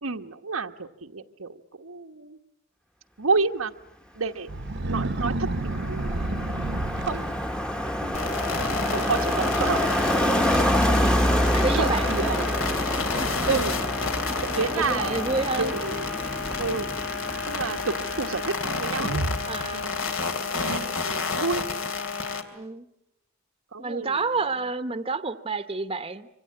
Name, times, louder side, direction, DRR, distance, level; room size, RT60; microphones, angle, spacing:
voice 1, 0.0-2.4 3.2-3.7 4.1-4.5 4.8-6.2 7.0-7.7 8.0-8.2 8.9-10.0 11.7-12.5 12.8-13.1 13.5-13.8 14.4-15.3 15.6-16.1 16.6-16.9 17.4-19.2 19.7-20.1 21.0-21.6 22.3-22.4 23.7-24.2, right 4 dB, 90° right, 6 dB, 1.2 m, -30 dB
sound 1, 4.5-7.8 8.4-8.6 9.0-9.4 9.6-9.7 10.5-10.6 11.1-11.2 11.8-12.2 13.0-13.1 16.0-17.0 19.0-20.0 20.5-21.3, right 2 dB, 60° right, 1.0 m, -31 dB
Car passing by, 4.7-19.4 19.7-20.0, equal, 5° left, 1.1 m, -27 dB
sound 2, 8.1-22.4, left 4 dB, 70° left, 2.8 m, -30 dB
voice 2, 11.5-12.4 13.2-13.3 14.5-15.7 19.4-19.9 22.5-22.9 23.8-26.3, right 3 dB, 25° right, 11 dB, 0.9 m, -30 dB
25.5 x 25.5 x 8.6 m, 0.85 s
head